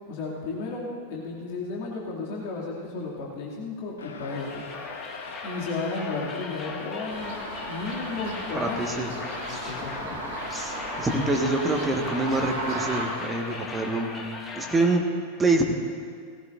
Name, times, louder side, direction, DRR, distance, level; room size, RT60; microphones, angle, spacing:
voice 1, 0.1-4.6 5.4-7.4 7.7-8.9 9.5-10.0, left 3 dB, 45° left, -5 dB, 2.5 m, -33 dB
sound 1, 4.0-13.7, left 5 dB, 65° left, 0.9 m, -42 dB
sound 2, 4.3-15.0, left 3 dB, 20° left, 1.5 m, -39 dB
sound 3, 7.1-13.1, right 2 dB, 50° right, 2.3 m, -35 dB
voice 2, 8.5-9.1 10.5-14.3 14.5-15.1 15.4-15.7, right 2 dB, 15° right, 2 dB, 1.5 m, -26 dB
19.0 x 16.5 x 2.6 m, 2.1 s
figure-of-eight pair, 90°, 0 cm